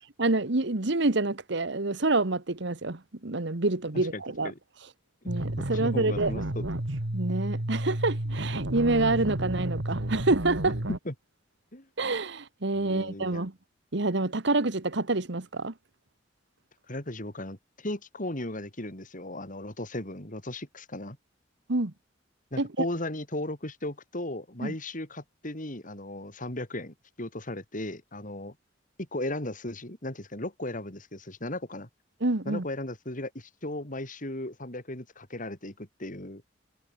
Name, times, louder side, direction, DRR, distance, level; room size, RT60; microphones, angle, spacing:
voice 1, 0.2-4.5 5.2-6.3 7.1-10.8 12.0-13.5 13.9-15.7 21.7-21.9 22.6-22.9 24.6-24.7 32.2-32.6, right 2 dB, 65° right, 1.5 m, -27 dB
voice 2, 3.9-4.6 5.2-5.4 5.7-6.7 10.9-11.1 11.7-11.9 12.7-13.4 16.9-21.2 22.5-28.5 29.0-31.9 32.4-36.4, left 1 dB, 45° left, 5.1 m, -36 dB
sound 1, 5.3-11.0, right 1 dB, 85° right, 2.6 m, -31 dB
head